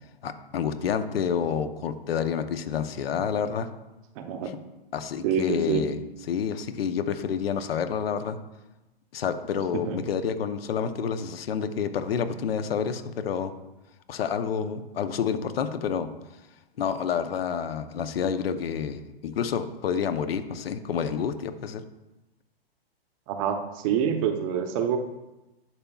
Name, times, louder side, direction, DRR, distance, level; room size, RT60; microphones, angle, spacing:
voice 1, 0.2-3.7 4.9-6.0 6.3-8.4 9.1-13.5 14.1-16.1 16.8-21.8, left 7 dB, 70° left, 10 dB, 0.8 m, -29 dB
voice 2, 4.2-4.5 5.2-5.9 9.7-10.0 23.3-25.0, right 7 dB, 35° right, 6 dB, 0.7 m, -26 dB
11.0 x 5.7 x 2.3 m, 1.0 s
hypercardioid pair, 135°, 31 cm